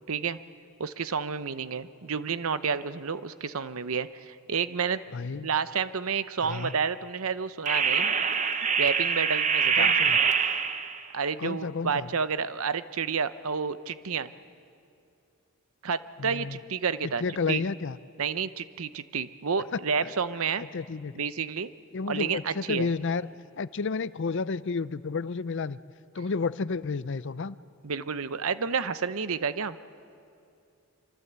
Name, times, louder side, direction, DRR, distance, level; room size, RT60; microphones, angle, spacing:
voice 1, 0.1-0.4 0.8-5.0 5.4-8.1 8.8-9.9 11.1-14.3 15.8-17.2 17.5-17.6 18.2-20.6 21.1-21.7 22.1-22.9 27.8-29.8, right 6 dB, 70° right, 13 dB, 0.8 m, -30 dB
voice 2, 5.1-5.5 6.4-6.7 9.8-10.2 11.4-12.1 16.2-16.6 17.2-18.0 20.0-20.1 20.7-21.1 21.9-23.2 23.6-25.8 26.1-27.6, left 4 dB, 55° left, 16 dB, 0.5 m, -31 dB
sound 1, 6.5-6.7 7.7-11.0, right 6 dB, 35° right, 0.9 m, -25 dB
24.5 x 24.5 x 8.1 m, 2.5 s
head